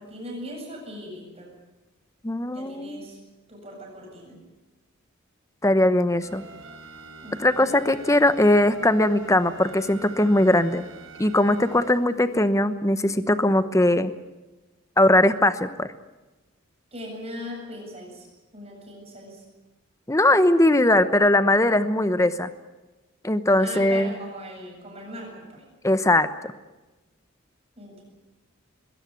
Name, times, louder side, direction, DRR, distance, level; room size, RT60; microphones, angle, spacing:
voice 1, 0.0-1.5 2.5-3.2 3.5-4.4 7.2-7.7 16.9-18.3 18.5-19.4 23.6-25.6 27.8-28.0, equal, 30° right, 1 dB, 7.8 m, -39 dB
voice 2, 2.2-3.1 5.6-6.4 7.4-10.8 11.2-14.1 15.0-15.9 20.1-22.5 23.2-24.1 25.8-26.3, left 1 dB, 15° left, 12 dB, 0.9 m, -20 dB
sound 1, 6.2-12.4, right 3 dB, 70° right, 6.7 m, -45 dB
21.5 x 17.5 x 9.6 m, 1.1 s
head